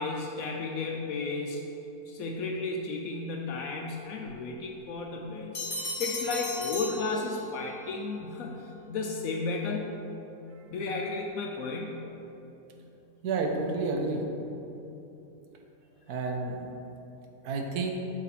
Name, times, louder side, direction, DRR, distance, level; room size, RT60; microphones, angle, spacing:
voice 1, 0.0-1.6 2.1-9.9 10.7-12.1, left 3 dB, 75° left, 1 dB, 1.0 m, -33 dB
Bell, 5.5-7.8, left 2 dB, 35° left, 1.6 m, -36 dB
voice 2, 13.2-14.3 16.1-16.7 17.4-17.9, right 3 dB, 85° right, 2 dB, 1.3 m, -30 dB
6.5 x 4.1 x 5.8 m, 3.0 s
omnidirectional pair, 1.6 m